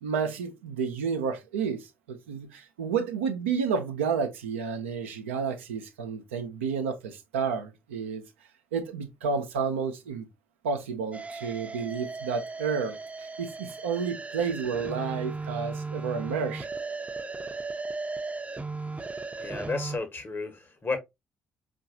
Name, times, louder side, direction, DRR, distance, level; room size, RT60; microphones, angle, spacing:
voice 1, 0.0-8.2 8.7-10.3 10.6-16.7, right 6 dB, 85° right, 0.6 m, -31 dB
sound 1, 11.1-20.0, right 3 dB, 20° right, 0.6 m, -36 dB
voice 2, 19.4-21.0, left 3 dB, 35° left, 1.2 m, -32 dB
4.6 x 2.5 x 2.7 m
hypercardioid pair, 45°, 6 cm